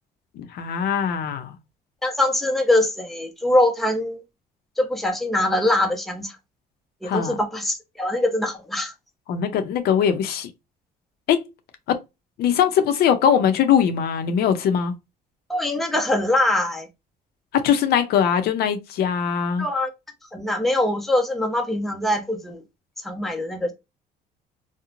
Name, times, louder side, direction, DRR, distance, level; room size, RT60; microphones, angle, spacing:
voice 1, 0.4-1.6 7.0-7.3 9.3-10.5 11.3-11.4 11.9-12.0 12.4-14.9 17.5-19.7, left 8 dB, 70° left, 0.5 m, -21 dB
voice 2, 2.0-4.2 4.8-6.3 7.0-8.9 15.5-16.9 19.6-19.9 20.3-22.6 23.0-23.7, left 1 dB, ahead, 0.6 m, -23 dB
2.9 x 2.0 x 2.4 m
cardioid pair, 110°, 17 cm